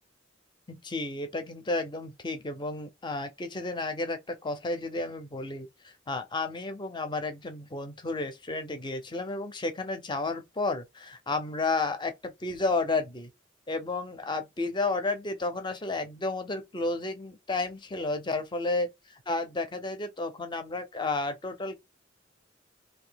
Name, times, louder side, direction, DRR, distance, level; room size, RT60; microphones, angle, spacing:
voice 1, 0.7-13.3 13.7-21.8, left 3 dB, 25° left, 0.6 m, -32 dB
2.7 x 2.7 x 3.9 m
head